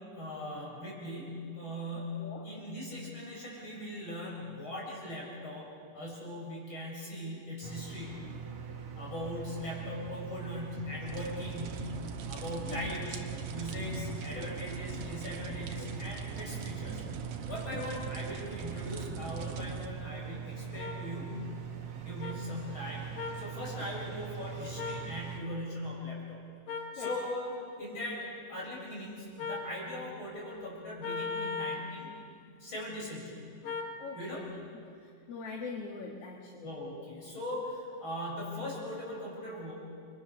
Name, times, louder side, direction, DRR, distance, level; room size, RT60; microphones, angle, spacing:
voice 1, 0.0-5.7 5.9-8.3 9.0-11.9 12.3-13.2 13.5-17.1 17.5-21.4 22.0-23.1 23.3-26.4 26.9-32.1 32.6-33.5 34.1-34.4 36.5-39.7, left 1 dB, 35° left, -3 dB, 8.0 m, -40 dB
sound 1, 7.6-25.4, right 7 dB, 60° right, 3.0 m, -42 dB
sound 2, 11.1-19.9, right 6 dB, 90° right, 3.0 m, -42 dB
sound 3, 20.8-21.0 22.2-22.3 23.2-23.4 24.8-25.1 26.7-27.3 29.4-29.7 31.0-31.9 33.6-33.9, left 4 dB, 75° left, 3.4 m, -36 dB
voice 2, 34.0-34.5 35.3-36.6, left 4 dB, 50° left, 0 dB, 2.5 m, -42 dB
30.0 x 24.5 x 6.6 m, 2.4 s
omnidirectional pair, 3.8 m